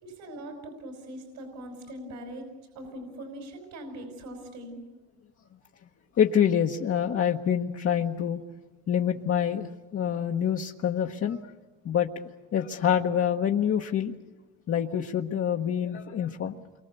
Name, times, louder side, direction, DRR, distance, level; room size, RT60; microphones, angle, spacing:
voice 1, 0.0-2.5 2.7-4.8, right 1 dB, 70° right, 2 dB, 5.4 m, -41 dB
voice 2, 6.2-8.4 8.9-11.4 11.8-12.1 12.5-14.1 14.7-16.5, left 9 dB, 45° left, 2 dB, 1.2 m, -26 dB
29.0 x 23.5 x 7.0 m, 1.2 s
supercardioid pair, 95°, 32 cm